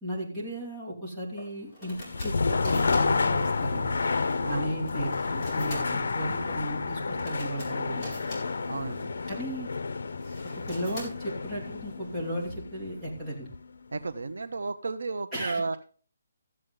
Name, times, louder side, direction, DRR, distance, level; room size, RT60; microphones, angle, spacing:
voice 1, 0.0-3.9 4.5-8.2 9.3-9.7 10.7-13.5 15.3-15.8, equal, 10° right, -7 dB, 2.6 m, -35 dB
sound 1, 1.3-12.5, left 1 dB, 10° left, 4.0 m, -47 dB
sound 2, 1.9-13.8, left 4 dB, 70° left, 0.8 m, -30 dB
voice 2, 8.7-9.1 13.9-15.8, right 3 dB, 90° right, 12 dB, 0.9 m, -33 dB
14.0 x 7.7 x 3.8 m, 0.41 s
hypercardioid pair, 175°, 0 cm